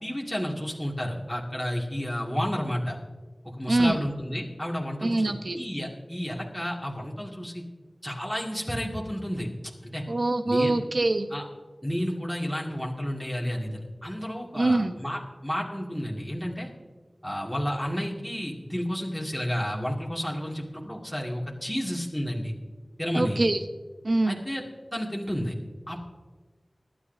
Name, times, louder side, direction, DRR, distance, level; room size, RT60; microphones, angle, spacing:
voice 1, 0.0-3.0 3.6-7.6 8.0-9.5 9.8-10.0 10.5-10.7 11.3-11.5 11.8-16.7 17.2-22.5 23.0-23.4 24.3-24.6 24.9-25.5 25.9-26.1, equal, 10° left, -3 dB, 2.2 m, -31 dB
voice 2, 3.7-4.0 5.0-5.6 10.1-11.3 14.5-14.9 23.1-23.6 24.0-24.4, right 2 dB, 70° right, 7 dB, 0.9 m, -24 dB
25.0 x 11.5 x 2.7 m, 1.4 s
wide cardioid pair, 40°, 0 cm